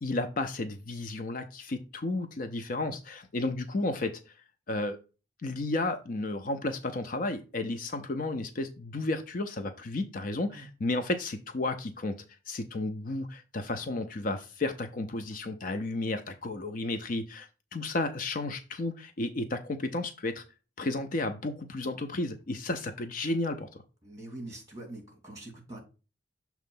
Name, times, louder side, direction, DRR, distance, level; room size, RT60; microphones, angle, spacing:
voice 1, 0.0-4.2 4.7-5.0 5.4-12.2 12.5-20.4 20.8-23.8, left 2 dB, 45° left, 8 dB, 0.5 m, -32 dB
voice 2, 24.0-25.8, right 2 dB, 15° right, 0 dB, 2.4 m, -44 dB
6.6 x 3.1 x 5.3 m, 0.32 s
head